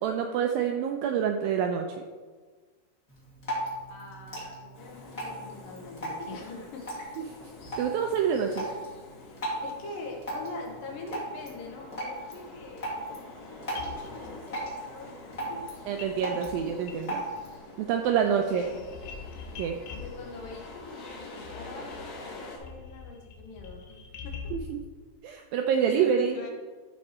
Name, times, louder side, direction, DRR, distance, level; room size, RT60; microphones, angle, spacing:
voice 1, 0.0-2.0 7.8-8.7 15.9-17.2 17.8-18.6 19.6-19.8 24.5-24.8 25.2-26.4, right 7 dB, 85° right, 4 dB, 2.1 m, -27 dB
Drip, 3.1-17.6, right 1 dB, 25° left, 2.1 m, -38 dB
voice 2, 3.9-6.9 9.2-12.9 13.4-15.6 18.2-18.9 19.9-24.4 25.8-26.5, left 3 dB, 65° left, 1 dB, 2.6 m, -44 dB
sound 1, 4.7-22.6, left 2 dB, 50° left, 2.5 m, -47 dB
sound 2, 13.7-14.7 16.0-16.2 16.4-17.5 17.8-24.8, left 5 dB, 90° left, 3.3 m, -44 dB
14.0 x 5.4 x 4.3 m, 1.4 s
omnidirectional pair, 4.7 m